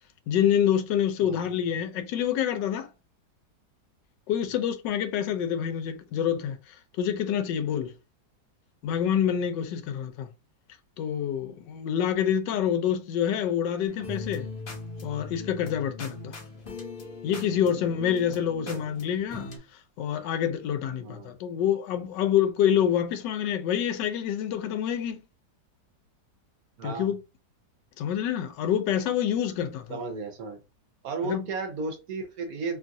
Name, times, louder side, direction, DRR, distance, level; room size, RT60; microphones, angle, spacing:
voice 1, 0.3-2.9 4.3-7.9 8.8-10.3 11.0-14.5 15.0-16.4 17.2-19.5 20.0-25.2 26.8-27.2 28.0-30.0 31.2-31.5, left 9 dB, 85° left, 1.2 m, -27 dB
sound 1, 13.9-19.6, left 3 dB, 45° left, 0.8 m, -40 dB
voice 2, 21.0-21.4 26.8-27.1 29.9-30.6 31.0-32.8, right 4 dB, 65° right, 1.0 m, -34 dB
3.1 x 2.3 x 2.6 m
omnidirectional pair, 1.9 m